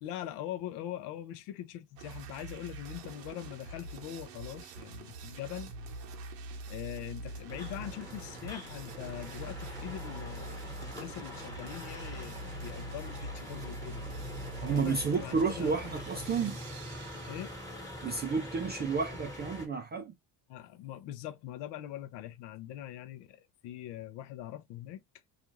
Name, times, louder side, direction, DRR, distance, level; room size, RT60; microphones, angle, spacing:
voice 1, 0.0-5.7 6.7-14.0 14.7-15.8 17.3-17.5 20.5-25.0, left 12 dB, 70° left, 0.6 m, -42 dB
sound 1, 2.0-17.9, right 2 dB, 90° right, 0.8 m, -44 dB
sound 2, 7.5-19.7, left 1 dB, 5° left, 1.1 m, -44 dB
voice 2, 14.6-16.6 18.0-20.1, right 5 dB, 25° right, 0.3 m, -31 dB
2.5 x 2.4 x 2.9 m
cardioid pair, 105°, 44 cm